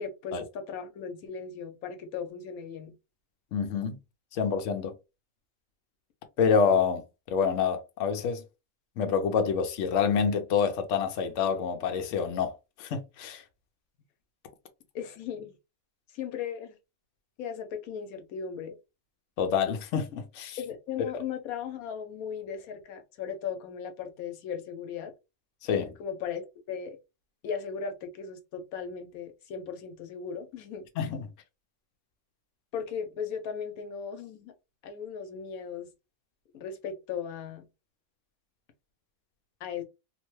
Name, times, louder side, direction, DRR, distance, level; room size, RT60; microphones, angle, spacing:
voice 1, 0.0-2.9 14.9-15.5 16.1-16.8 17.4-18.8 20.6-25.1 26.0-27.0 27.4-30.9 32.7-34.5 34.8-35.9 36.5-37.7 39.6-39.8, left 7 dB, 85° left, 1.1 m, -37 dB
voice 2, 3.5-4.0 4.3-4.9 6.4-8.4 9.0-12.5 12.8-13.4 19.4-20.6 25.6-25.9 31.0-31.2, left 6 dB, 65° left, 0.9 m, -27 dB
2.9 x 2.1 x 3.0 m
omnidirectional pair, 1.5 m